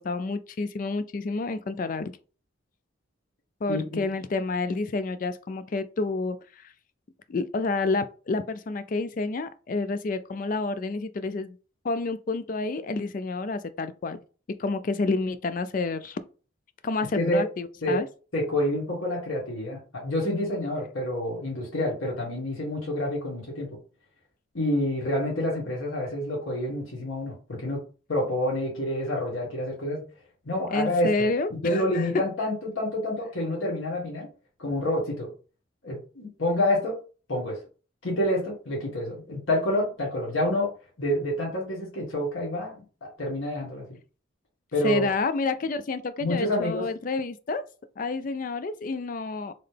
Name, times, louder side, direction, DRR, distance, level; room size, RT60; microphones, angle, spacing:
voice 1, 0.0-2.1 3.6-6.6 7.3-11.6 11.8-14.2 14.6-16.2 16.8-18.1 30.7-32.1 44.8-47.6 48.0-49.5, left 3 dB, 45° left, 0.3 m, -29 dB
voice 2, 3.7-4.0 17.1-17.4 17.8-18.0 18.3-23.7 24.5-27.8 28.1-30.0 30.4-34.3 34.6-35.3 35.8-37.0 37.3-37.6 38.0-40.7 41.0-43.8 44.7-45.1 46.2-46.9, left 1 dB, 85° left, 1.7 m, -28 dB
3.8 x 3.2 x 3.4 m
head